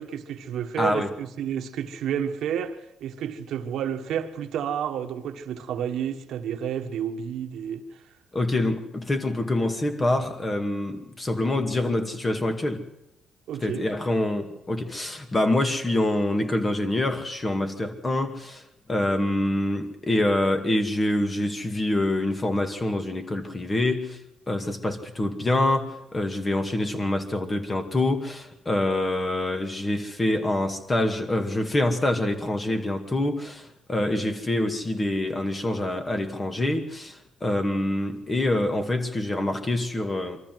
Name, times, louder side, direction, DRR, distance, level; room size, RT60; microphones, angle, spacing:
voice 1, 0.0-7.9 13.5-13.9, right 9 dB, 75° right, 1.4 m, -30 dB
voice 2, 0.8-1.1 8.3-12.8 13.6-24.2 24.5-40.4, left 1 dB, 25° left, 2.3 m, -26 dB
23.5 x 14.0 x 7.9 m
cardioid pair, 90°, 0 cm